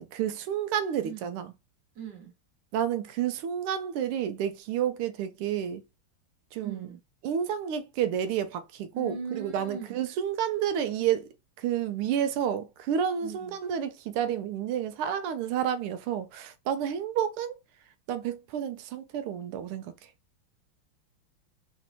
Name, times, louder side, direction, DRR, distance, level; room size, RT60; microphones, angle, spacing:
voice 1, 0.0-1.5 2.7-5.8 6.5-6.9 7.2-11.3 11.6-17.6 18.1-19.9, right 9 dB, 90° right, 1.5 m, -30 dB
voice 2, 1.0-1.4 1.9-2.3 6.6-7.0 8.9-10.0 13.2-13.6, right 5 dB, 65° right, 1.4 m, -40 dB
4.1 x 2.6 x 2.7 m
omnidirectional pair, 2.4 m